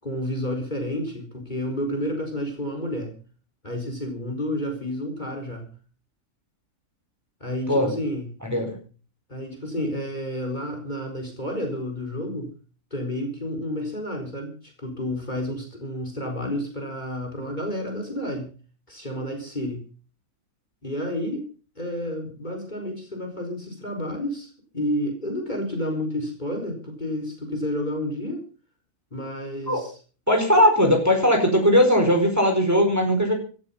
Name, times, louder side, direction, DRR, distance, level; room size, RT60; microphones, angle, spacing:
voice 1, 0.0-3.1 3.6-5.7 7.4-8.3 9.3-12.5 12.9-18.5 18.9-19.8 20.8-21.5 21.8-28.4 29.1-30.0, left 1 dB, 30° left, 3 dB, 4.5 m, -30 dB
voice 2, 8.4-8.7 29.7-29.8 30.3-33.3, equal, 10° right, 3 dB, 4.7 m, -19 dB
16.0 x 13.5 x 5.7 m, 0.40 s
omnidirectional pair, 1.6 m